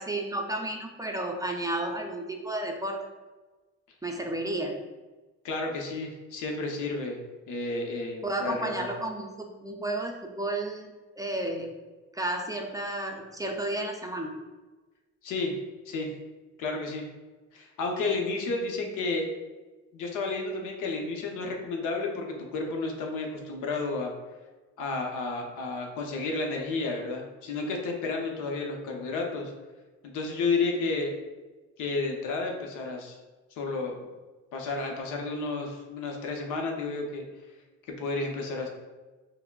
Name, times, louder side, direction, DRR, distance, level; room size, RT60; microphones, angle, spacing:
voice 1, 0.0-3.1 4.0-4.8 8.2-11.7 12.1-14.4, right 1 dB, 10° right, 2 dB, 0.4 m, -32 dB
voice 2, 5.4-7.2 7.5-8.9 15.2-15.5 15.9-16.1 16.6-17.0 17.5-19.3 19.9-24.1 24.8-29.5 30.0-31.1 31.8-33.2 33.6-34.1 34.5-37.2 38.0-38.7, left 3 dB, 90° left, 1 dB, 0.7 m, -31 dB
5.5 x 2.0 x 2.3 m, 1.2 s
cardioid pair, 90°, 30 cm